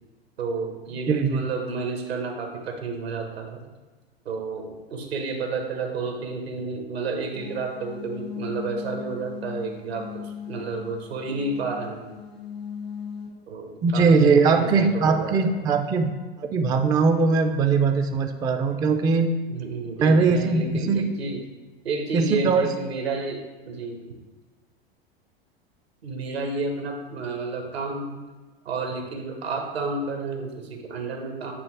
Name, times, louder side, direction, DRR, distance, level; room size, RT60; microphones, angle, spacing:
voice 1, 0.4-3.7 4.2-12.2 13.5-15.6 19.5-21.4 21.8-24.2 26.0-28.2 28.6-31.5, right 3 dB, 80° right, 3 dB, 1.2 m, -31 dB
voice 2, 1.1-1.5 13.8-16.1 16.4-19.3 20.0-21.0 22.1-22.7, right 4 dB, 15° right, 6 dB, 0.3 m, -20 dB
sound 1, 7.3-13.3, left 7 dB, 85° left, 2.0 m, -38 dB
8.4 x 2.9 x 4.6 m, 1.3 s
hypercardioid pair, 95°, 30 cm